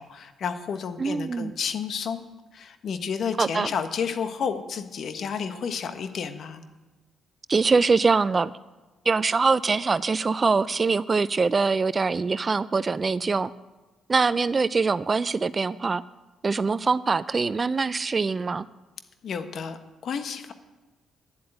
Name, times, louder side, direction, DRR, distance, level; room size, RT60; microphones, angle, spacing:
voice 1, 0.0-2.2 2.5-6.6 19.2-20.5, left 6 dB, 60° left, 8 dB, 1.2 m, -31 dB
voice 2, 1.0-1.5 3.4-3.7 7.5-8.5 9.1-13.5 14.1-16.0 16.4-18.7, right 4 dB, 30° right, 16 dB, 0.4 m, -23 dB
10.5 x 7.8 x 8.9 m, 1.2 s
cardioid pair, 90°, 0 cm